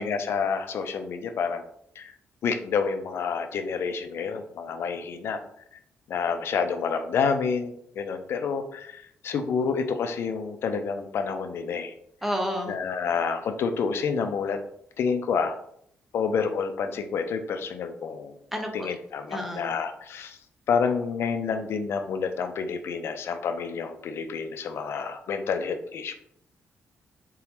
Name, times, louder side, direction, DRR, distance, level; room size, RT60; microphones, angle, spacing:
voice 1, 0.0-1.6 2.0-2.1 2.4-5.4 6.1-11.9 12.7-14.6 15.0-15.6 16.1-18.3 18.7-20.4 20.7-26.1, left 5 dB, 60° left, 7 dB, 0.4 m, -28 dB
voice 2, 12.2-12.7 18.5-18.9 19.3-19.7, equal, 5° right, 2 dB, 0.6 m, -30 dB
4.0 x 3.5 x 2.9 m, 0.70 s
cardioid pair, 150°, 5 cm